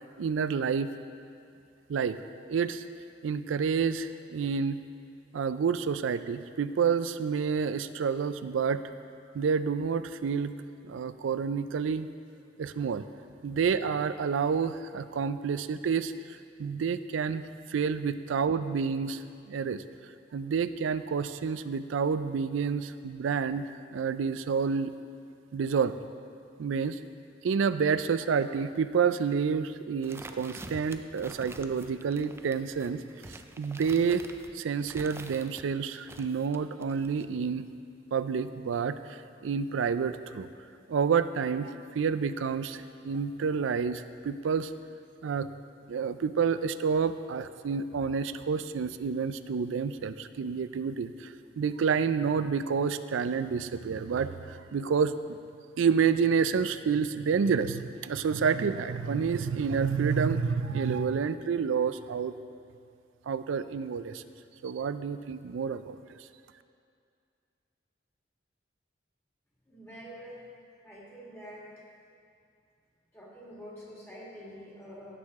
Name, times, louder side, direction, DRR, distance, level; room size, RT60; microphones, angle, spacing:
voice 1, 0.2-0.9 1.9-2.2 2.5-2.8 3.2-4.8 5.3-8.8 9.3-10.5 10.8-12.1 12.6-13.0 13.4-16.1 16.6-17.4 17.7-19.8 20.3-23.7 23.9-24.9 25.5-25.9 26.6-27.0 27.4-33.0 33.3-34.2 34.5-37.7 38.1-40.5 40.9-44.7 45.2-45.5 45.9-55.4 55.8-62.3 63.3-64.2 64.6-66.0, right 6 dB, 85° right, 13 dB, 0.4 m, -29 dB
sound 1, 30.0-35.6 36.0-37.3, right 2 dB, 15° right, 0.4 m, -46 dB
voice 2, 69.7-70.4 70.8-71.7 73.1-75.2, equal, 15° left, -6 dB, 1.8 m, -46 dB
16.0 x 6.5 x 3.6 m, 2.4 s
head